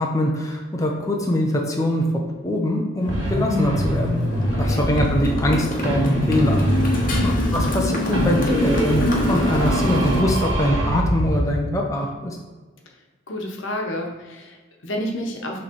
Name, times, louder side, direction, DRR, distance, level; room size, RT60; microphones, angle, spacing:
voice 1, 0.0-4.2 4.6-6.7 6.9-12.4, equal, 15° left, -1 dB, 0.7 m, -23 dB
Motorcycle, 3.0-10.2, left 1 dB, 45° left, 1.2 m, -26 dB
sound 1, 3.1-5.5 5.8-7.8 8.1-11.6, equal, 65° right, 1.6 m, -24 dB
voice 2, 4.5-4.8 7.1-7.4 12.8-12.9 13.3-15.6, equal, 70° left, 1 dB, 1.1 m, -30 dB
6.4 x 3.3 x 5.3 m, 1.3 s
head